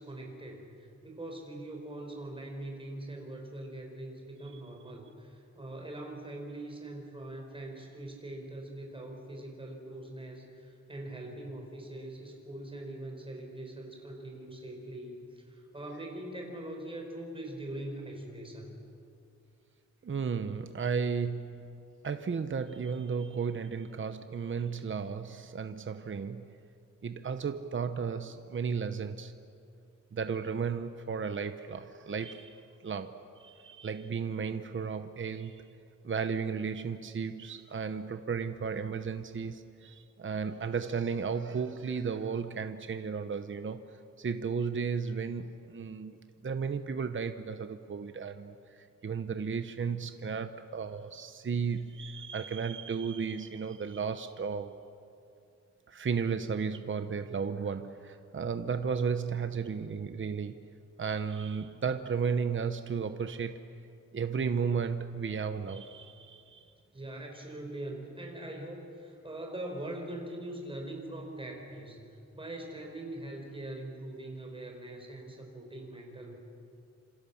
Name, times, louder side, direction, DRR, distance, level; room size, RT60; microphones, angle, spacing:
voice 1, 0.0-18.7 66.9-72.0 72.3-76.4, right 1 dB, 20° right, 1 dB, 4.8 m, -42 dB
voice 2, 20.0-21.8 22.0-26.6 27.0-29.3 30.1-35.6 36.0-43.9 44.2-46.2 46.4-54.7 55.9-60.7 61.0-63.6 64.1-66.7, right 6 dB, 45° right, 9 dB, 0.9 m, -34 dB
27.0 x 27.0 x 7.1 m, 2.6 s
wide cardioid pair, 150°, 29 cm